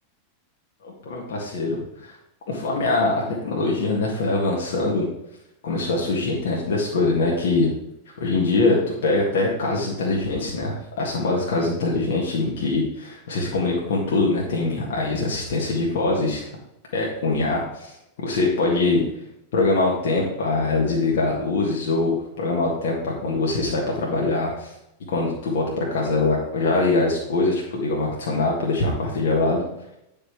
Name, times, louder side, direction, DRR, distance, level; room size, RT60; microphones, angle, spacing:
voice 1, 0.8-2.1 2.5-5.1 5.6-7.7 8.2-16.5 16.9-17.9 18.2-19.0 19.5-24.7 25.1-29.6, left 3 dB, 60° left, -2 dB, 1.8 m, -23 dB
9.7 x 5.4 x 4.7 m, 0.84 s
figure-of-eight pair, 90°, 0 cm